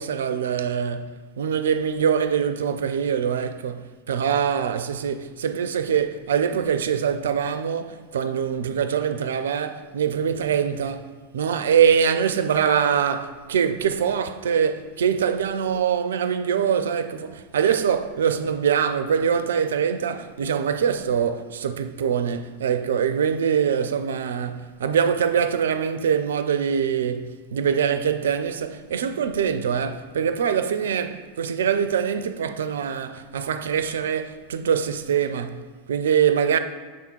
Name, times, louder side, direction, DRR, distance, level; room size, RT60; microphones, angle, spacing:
voice 1, 0.0-36.6, right 7 dB, 75° right, 0.4 m, -23 dB
7.6 x 3.6 x 4.4 m
hypercardioid pair, 90°, 0 cm